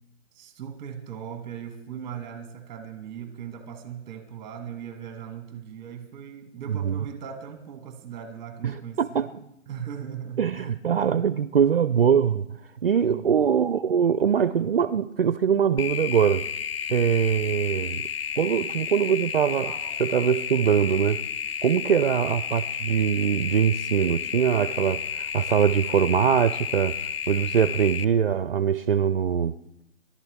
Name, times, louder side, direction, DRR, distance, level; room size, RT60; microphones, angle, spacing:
voice 1, 0.3-9.3 9.7-10.7 13.1-13.5 18.8-18.9 19.6-20.0, right 8 dB, 10° right, 1.0 m, -39 dB
voice 2, 8.6-9.4 10.4-12.5 12.8-16.5 16.9-18.1 18.4-19.7 20.0-21.2 21.6-27.0 27.3-29.6, right 8 dB, 45° right, 0.4 m, -23 dB
sound 1, 15.8-28.0, left 7 dB, 50° left, 0.4 m, -32 dB
25.0 x 11.5 x 3.4 m
hypercardioid pair, 155°, 40 cm